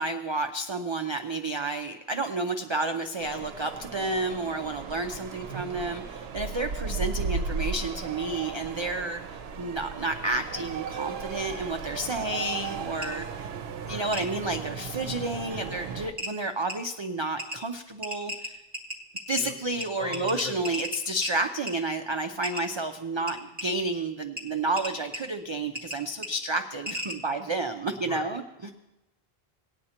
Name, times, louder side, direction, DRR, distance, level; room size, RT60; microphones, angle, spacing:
voice 1, 0.0-13.5 13.9-18.6 19.3-28.7, right 2 dB, 40° right, 5 dB, 0.4 m, -31 dB
sound 1, 3.2-16.1, right 5 dB, 80° right, 0.9 m, -36 dB
sound 2, 13.0-13.1 14.1-14.2 15.6-15.7 16.2-16.3 16.7-16.8 17.4-17.6 18.0-19.4 19.8-19.9 20.1-21.3 21.7-21.8 22.4-22.6 23.3-23.7 24.4-24.5 24.8-25.2 25.7-26.0 26.2-26.3 26.9-27.2, right 1 dB, 10° right, 1.8 m, -34 dB
voice 2, 13.7-14.1 15.5-15.7 19.3-20.8 28.0-28.3, left 1 dB, 45° left, -7 dB, 4.1 m, -40 dB
19.0 x 9.7 x 2.9 m, 0.97 s
omnidirectional pair, 1.0 m